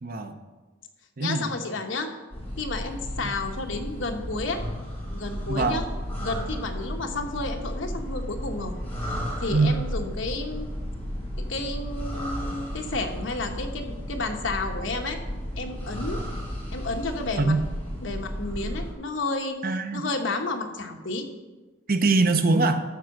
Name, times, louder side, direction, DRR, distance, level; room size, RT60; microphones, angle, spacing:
voice 1, 0.0-0.4 1.2-1.5 3.2-3.3 5.5-5.8 9.5-9.8 17.4-17.7 19.6-20.0 21.9-22.8, right 3 dB, 50° right, 8 dB, 0.8 m, -23 dB
voice 2, 1.2-2.1 2.6-4.6 5.1-5.8 6.2-8.8 9.0-10.7 11.5-15.2 15.6-16.2 16.7-17.5 18.0-19.6 19.9-21.3, left 3 dB, 70° left, 4 dB, 1.1 m, -31 dB
sound 1, 2.3-18.9, equal, 10° left, 3.9 m, -34 dB
12.5 x 4.7 x 6.5 m, 1.2 s
head